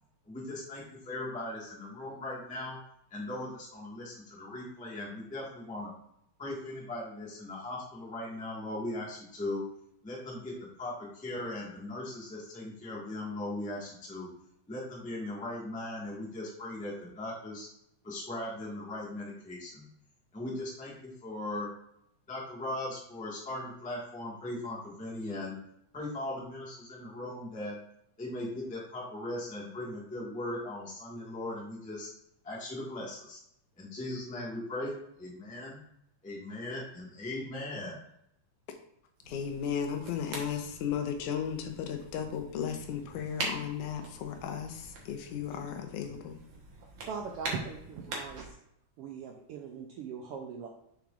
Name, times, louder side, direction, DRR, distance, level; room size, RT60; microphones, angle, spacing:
voice 1, 0.3-2.8 3.1-5.9 6.4-9.6 10.0-14.3 14.7-17.7 18.0-19.9 20.3-21.7 22.3-25.5 25.9-27.8 28.2-32.1 32.4-33.4 33.8-35.8 36.2-38.0, left 1 dB, 5° left, -4 dB, 0.8 m, -39 dB
sound 1, 39.2-48.5, right 2 dB, 55° right, 2.0 m, -43 dB
voice 2, 39.3-46.4, left 8 dB, 85° left, 6 dB, 2.3 m, -35 dB
voice 3, 47.1-48.5 49.0-50.7, right 6 dB, 80° right, 1 dB, 1.3 m, -40 dB
6.9 x 6.4 x 2.5 m, 0.76 s
omnidirectional pair, 3.4 m